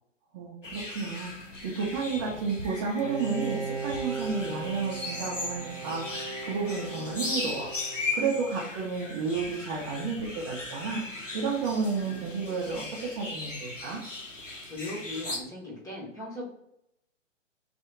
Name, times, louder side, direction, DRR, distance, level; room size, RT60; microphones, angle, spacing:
voice 1, 0.3-1.3 1.6-7.7 8.1-11.0 11.3-14.0, right 5 dB, 25° right, -3 dB, 0.7 m, -31 dB
sound 1, 0.6-15.4, left 2 dB, 90° left, 1.0 m, -38 dB
Bowed string instrument, 3.0-8.6, right 4 dB, 65° right, 0.7 m, -38 dB
voice 2, 14.7-16.5, left 1 dB, 10° left, -6 dB, 1.0 m, -38 dB
3.4 x 2.7 x 3.8 m, 0.77 s
figure-of-eight pair, 120°, 37 cm